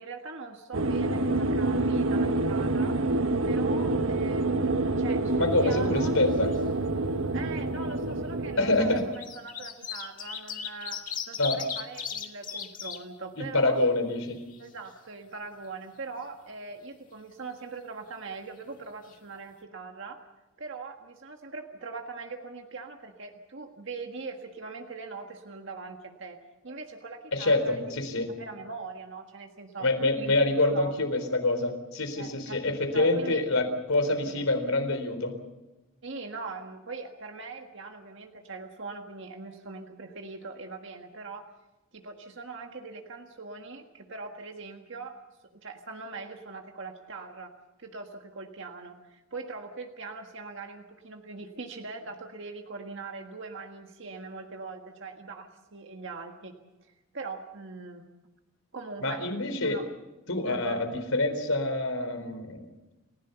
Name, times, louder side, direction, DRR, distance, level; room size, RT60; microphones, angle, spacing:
voice 1, 0.0-3.0 3.4-6.1 7.3-11.0 11.3-13.8 14.6-20.2 20.6-26.4 26.6-28.1 28.4-29.9 30.2-30.9 32.2-33.4 34.2-34.4 36.0-41.5 41.9-45.2 45.5-47.5 47.8-56.6 56.8-58.1 58.7-59.2 59.6-59.9 60.5-60.8, right 4 dB, 60° right, 3 dB, 1.7 m, -41 dB
sound 1, 0.7-9.1, right 2 dB, 75° right, 1.2 m, -27 dB
voice 2, 5.4-6.5 8.6-9.0 11.4-11.6 13.4-14.4 27.3-28.3 29.8-35.4 59.0-59.8 60.3-62.7, left 2 dB, 85° left, 7 dB, 4.1 m, -26 dB
sound 2, 5.5-6.3 6.5-6.6 7.7-7.9 8.8-13.0 13.4-13.5 13.8-14.9 18.7-18.8 19.1-19.2, left 7 dB, 40° left, 2.0 m, -37 dB
29.5 x 16.0 x 7.0 m, 1.0 s
head